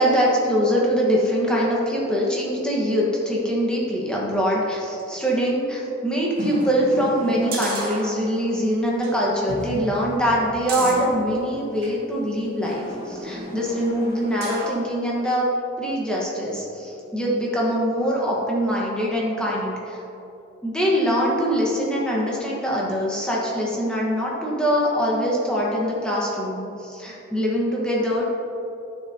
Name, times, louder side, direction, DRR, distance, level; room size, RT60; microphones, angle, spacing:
voice 1, 0.0-15.5 15.8-20.0 20.6-28.3, equal, 5° left, -5 dB, 1.4 m, -23 dB
sound 1, 6.3-8.6 9.0-9.1 9.5-12.0 12.6-14.8 15.3-15.4, right 1 dB, 50° right, 1.8 m, -33 dB
11.5 x 6.6 x 2.9 m, 2.9 s
head